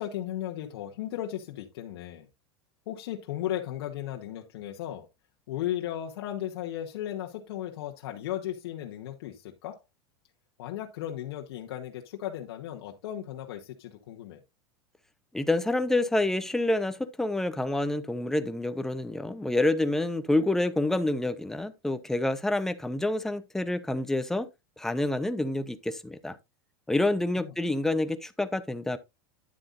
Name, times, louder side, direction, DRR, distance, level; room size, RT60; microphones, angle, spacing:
voice 1, 0.0-2.3 2.9-5.1 5.5-9.8 10.6-14.4 27.4-27.5, left 12 dB, 75° left, 1.2 m, -36 dB
voice 2, 15.3-24.5 24.8-26.4 26.9-29.0, left 2 dB, 5° left, 0.6 m, -28 dB
9.9 x 7.7 x 2.6 m
supercardioid pair, 140°, 13 cm